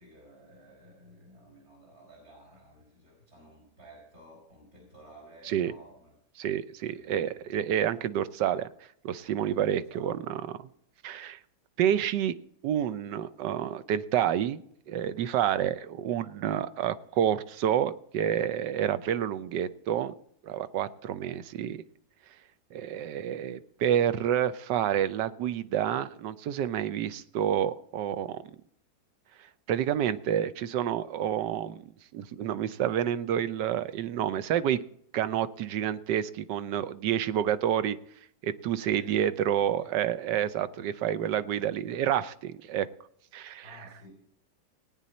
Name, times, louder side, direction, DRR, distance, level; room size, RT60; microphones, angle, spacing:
voice 1, 0.0-6.2 6.9-7.7 9.5-10.2 38.9-39.2 39.8-39.9 43.6-44.1, right 1 dB, 65° right, -3 dB, 5.2 m, -54 dB
voice 2, 6.4-8.7 9.0-10.4 11.0-11.4 11.8-12.3 12.6-14.6 14.9-20.1 20.4-21.8 22.7-28.4 29.7-34.8 35.1-38.0 38.4-42.9 43.3-43.6, right 10 dB, 80° right, 14 dB, 1.3 m, -29 dB
19.0 x 9.2 x 4.2 m, 0.69 s
omnidirectional pair, 1.8 m